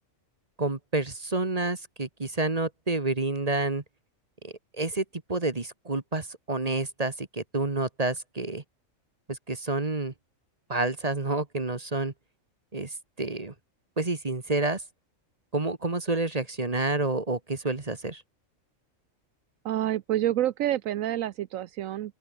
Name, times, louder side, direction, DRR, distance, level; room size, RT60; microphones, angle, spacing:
voice 1, 0.6-3.8 4.4-5.0 5.3-8.6 9.3-10.1 10.7-12.1 12.7-13.5 14.0-14.8 15.5-18.2, right 2 dB, 30° right, 1.6 m, -29 dB
voice 2, 19.6-22.1, right 12 dB, 80° right, 1.0 m, -28 dB
open air
omnidirectional pair, 1.4 m